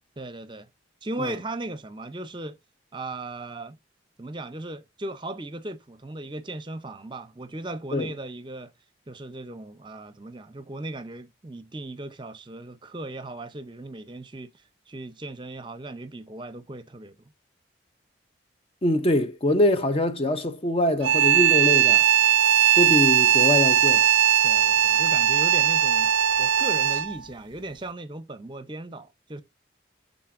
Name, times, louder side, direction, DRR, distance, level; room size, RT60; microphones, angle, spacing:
voice 1, 0.2-0.7 1.0-2.6 2.9-3.8 4.2-8.7 9.1-17.2 24.4-29.4, right 2 dB, 25° right, 0.6 m, -37 dB
voice 2, 18.8-22.0 22.8-24.1, left 1 dB, 30° left, 0.5 m, -23 dB
sound 1, 21.0-27.2, right 11 dB, 70° right, 0.4 m, -19 dB
11.5 x 4.0 x 2.5 m
head